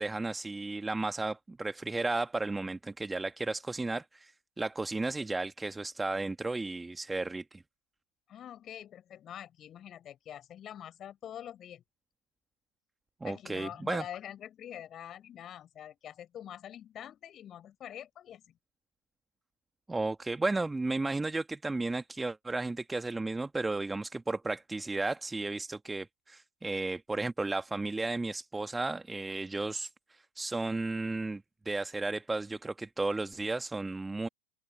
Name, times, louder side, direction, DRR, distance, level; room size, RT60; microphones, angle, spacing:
voice 1, 0.0-7.6 13.2-14.0 19.9-34.3, right 3 dB, 10° right, 1.8 m, -34 dB
voice 2, 8.3-11.8 13.2-18.4, left 10 dB, 30° left, 5.2 m, -45 dB
open air
figure-of-eight pair, 90°, 0 cm